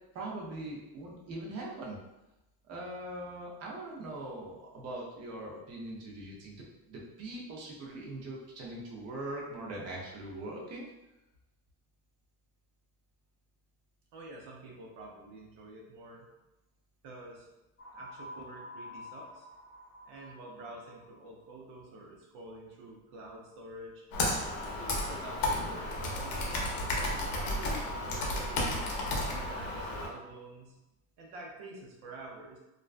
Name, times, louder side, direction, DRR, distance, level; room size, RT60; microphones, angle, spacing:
voice 1, 0.1-2.0 2.7-10.9, right 1 dB, 40° right, -3 dB, 0.6 m, -41 dB
voice 2, 14.1-16.3 17.0-17.5 17.9-19.5 20.1-24.1 24.6-26.7 27.4-28.8 29.3-30.8 31.2-32.6, right 1 dB, 85° right, -1 dB, 0.7 m, -48 dB
sound 1, 17.8-21.4, left 1 dB, 30° left, 1.0 m, -49 dB
Computer keyboard, 24.1-30.1, left 1 dB, 60° left, 0.7 m, -33 dB
2.4 x 2.2 x 2.4 m, 0.96 s
cardioid pair, 145°, 39 cm